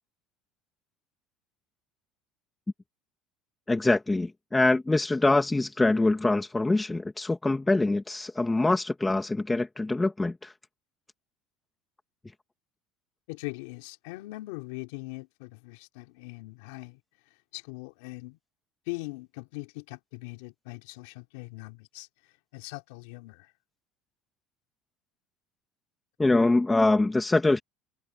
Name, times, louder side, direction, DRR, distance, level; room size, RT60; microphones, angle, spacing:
voice 1, 3.7-10.5 26.2-27.6, left 2 dB, 10° left, 2.4 m, -24 dB
voice 2, 13.3-17.0 17.5-18.4 18.9-22.1 22.5-23.5, left 22 dB, 85° left, 3.7 m, -41 dB
supercardioid pair, 120°, 0 cm